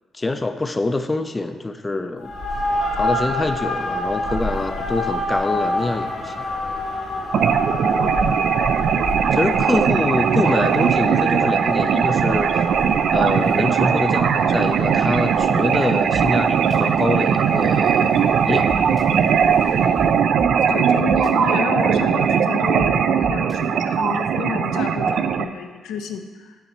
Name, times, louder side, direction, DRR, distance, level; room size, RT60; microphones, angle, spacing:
voice 1, 0.1-2.3 3.0-6.4 9.3-12.6 13.1-18.7, left 2 dB, 20° left, 8 dB, 0.4 m, -25 dB
sound 1, 2.2-20.1, left 1 dB, 65° left, 1.1 m, -29 dB
sound 2, 7.3-25.4, right 7 dB, 65° right, 0.3 m, -19 dB
voice 2, 8.0-8.5 9.5-9.7 20.7-26.6, left 6 dB, 85° left, 5 dB, 0.5 m, -30 dB
sound 3, 16.1-16.2 16.7-16.8 18.7-19.0 20.0-20.1 20.4-20.5 21.1-21.3 22.8-22.9 23.2-23.6, right 2 dB, 25° right, 0.6 m, -33 dB
9.3 x 3.2 x 4.3 m, 1.4 s
cardioid pair, 90°, 0 cm